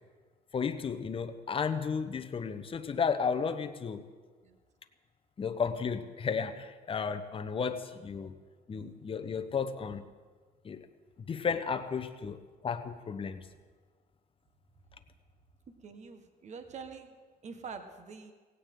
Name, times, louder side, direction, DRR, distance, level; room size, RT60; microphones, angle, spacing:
voice 1, 0.5-4.0 5.4-8.3 8.7-10.0 10.6-10.9 11.3-13.5, left 6 dB, 30° left, 8 dB, 1.0 m, -33 dB
voice 2, 15.8-17.1 17.4-18.3, right 5 dB, 45° right, 7 dB, 1.5 m, -45 dB
17.5 x 16.5 x 3.8 m, 1.5 s
cardioid pair, 110°, 17 cm